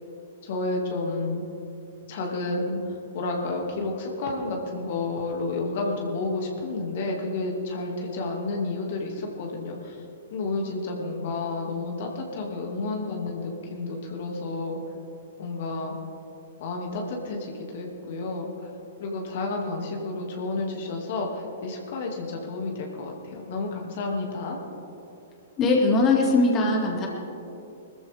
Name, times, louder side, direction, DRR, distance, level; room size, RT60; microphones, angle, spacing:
voice 1, 0.4-1.4 2.1-10.0 10.3-14.8 15.4-15.9 16.6-18.7 19.0-24.6, left 3 dB, 55° left, 0 dB, 2.3 m, -31 dB
voice 2, 25.6-27.1, left 3 dB, 30° left, -1 dB, 2.3 m, -20 dB
21.0 x 14.0 x 3.6 m, 2.8 s
hypercardioid pair, 120°, 0 cm